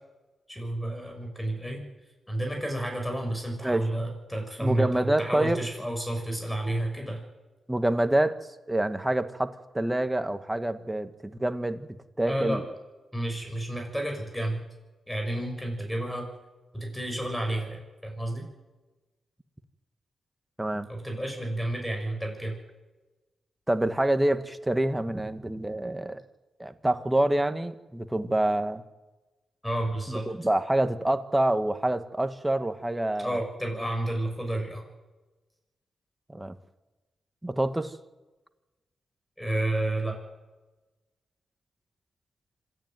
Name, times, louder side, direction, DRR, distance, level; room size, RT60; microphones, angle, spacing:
voice 1, 0.5-1.8 2.3-7.2 12.3-12.6 13.1-14.6 15.1-16.3 16.7-18.4 20.9-22.5 29.6-30.2 33.2-34.8 39.4-40.2, right 1 dB, 5° left, 2 dB, 6.9 m, -31 dB
voice 2, 4.6-5.6 7.7-8.4 8.7-11.9 12.2-12.6 20.6-20.9 23.7-26.2 26.6-28.8 30.1-33.4 36.3-36.6 37.4-37.9, right 1 dB, 10° right, 9 dB, 1.7 m, -27 dB
26.5 x 10.5 x 9.3 m, 1.1 s
cardioid pair, 60°, 0 cm